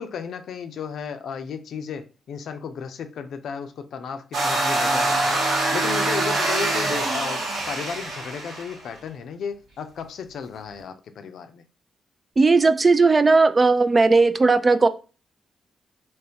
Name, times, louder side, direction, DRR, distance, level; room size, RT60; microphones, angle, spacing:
voice 1, 0.0-5.4 5.7-7.4 7.7-11.6, left 6 dB, 75° left, 8 dB, 0.5 m, -34 dB
sound 1, 4.3-8.7, right 2 dB, 85° right, 1.3 m, -24 dB
voice 2, 12.4-14.9, right 3 dB, 35° right, 11 dB, 0.4 m, -17 dB
3.5 x 3.0 x 2.9 m, 0.35 s
cardioid pair, 65°, 0 cm